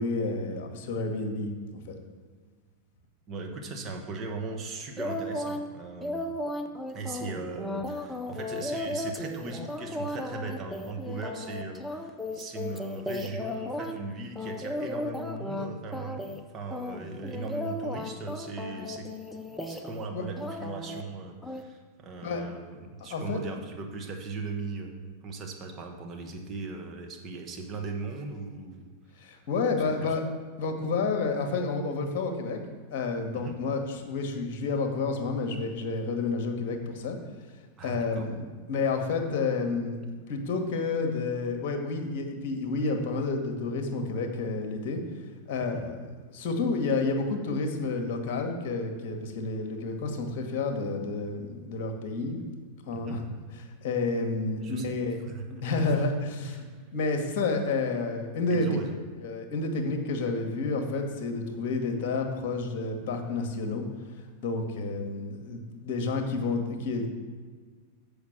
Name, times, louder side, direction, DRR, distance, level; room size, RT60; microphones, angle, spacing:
voice 1, 0.0-1.5 1.9-2.0 20.1-20.3 22.2-22.4 23.1-23.4 29.2-30.2 30.6-32.6 32.9-37.2 37.8-38.4 38.7-40.0 40.3-45.0 45.5-46.1 46.3-52.4 52.9-53.2 53.8-55.2 55.5-56.6 56.9-58.7 59.2-63.8 64.4-67.1, left 3 dB, 45° left, 4 dB, 1.2 m, -30 dB
voice 2, 3.3-6.3 6.9-19.1 19.6-28.9 29.2-29.5 29.8-30.1 33.3-33.6 37.8-38.3 45.6-45.8 52.9-53.2 54.6-54.9 55.3-55.6 56.5-56.7 58.5-58.9, right 3 dB, 30° right, 2 dB, 1.2 m, -38 dB
sound 1, 5.0-5.7 6.0-14.0 14.4-15.7 15.9-16.4 16.7-20.1 20.4-21.0 21.4-21.6, left 1 dB, 5° left, 0.6 m, -35 dB
7.2 x 5.1 x 6.4 m, 1.5 s
figure-of-eight pair, 90°, 0 cm